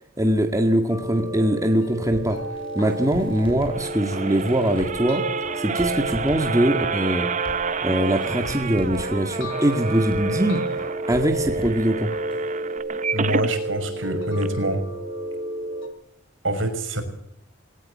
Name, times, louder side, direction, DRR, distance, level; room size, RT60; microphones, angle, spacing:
voice 1, 0.2-2.4 2.8-5.3 5.5-7.3 7.8-10.7 11.1-12.1, right 1 dB, 15° right, 5 dB, 2.0 m, -22 dB
sound 1, 0.9-15.9, right 1 dB, 85° left, 4.7 m, -31 dB
sound 2, 2.1-5.1 5.4-7.2 7.5-10.4 10.8-12.5 12.8-12.9, equal, 25° left, 7.3 m, -41 dB
sound 3, 3.4-13.5 14.0-14.1 14.4-14.5, right 5 dB, 40° right, 0.8 m, -30 dB
voice 2, 13.1-14.9 16.4-17.0, right 1 dB, 70° right, 6 dB, 6.1 m, -25 dB
21.0 x 18.5 x 8.5 m, 0.75 s
head